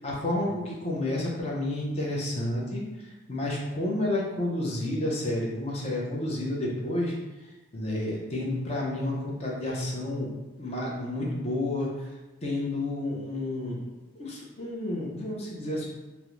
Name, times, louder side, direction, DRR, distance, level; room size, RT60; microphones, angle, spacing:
voice 1, 0.0-2.8 3.3-7.1 7.7-10.3 10.6-11.9 12.4-13.8 14.2-15.9, left 1 dB, 35° left, -3 dB, 0.5 m, -30 dB
2.4 x 2.0 x 2.9 m, 1.2 s
head